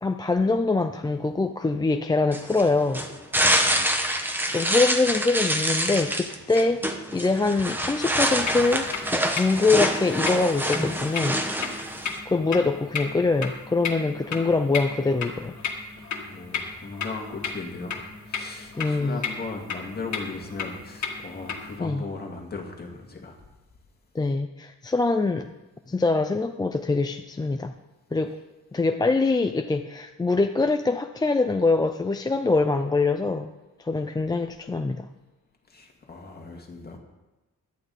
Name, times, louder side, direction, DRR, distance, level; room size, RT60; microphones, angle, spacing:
voice 1, 0.0-3.1 4.5-11.4 12.3-15.5 18.8-19.2 21.8-22.1 24.1-25.5 25.9-27.7 28.1-28.4 28.7-33.5 33.8-35.1, left 3 dB, 15° left, 6 dB, 0.4 m, -24 dB
sound 1, 2.3-12.2, right 1 dB, 5° right, 0.9 m, -26 dB
voice 2, 3.4-4.0 4.5-4.8 16.0-17.9 18.3-23.4 35.7-37.0, left 3 dB, 30° left, 1 dB, 2.0 m, -38 dB
sound 2, 8.2-21.8, left 5 dB, 60° left, 1.9 m, -35 dB
17.0 x 11.5 x 4.1 m, 1.1 s
wide cardioid pair, 175°, 32 cm